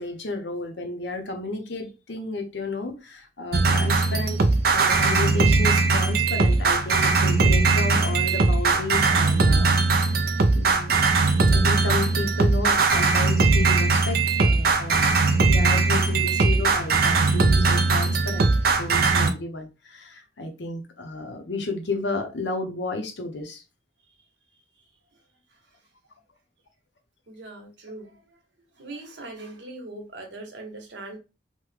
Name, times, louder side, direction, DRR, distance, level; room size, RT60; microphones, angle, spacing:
voice 1, 0.0-4.4 4.7-10.1 10.5-11.2 11.5-15.1 15.5-18.5 18.8-23.6, left 2 dB, 70° left, 0.7 m, -32 dB
sound 1, 3.5-19.3, right 3 dB, 50° right, 0.4 m, -20 dB
voice 2, 27.3-28.4 28.7-31.2, right 2 dB, 75° right, 1.0 m, -41 dB
3.2 x 2.1 x 3.2 m
head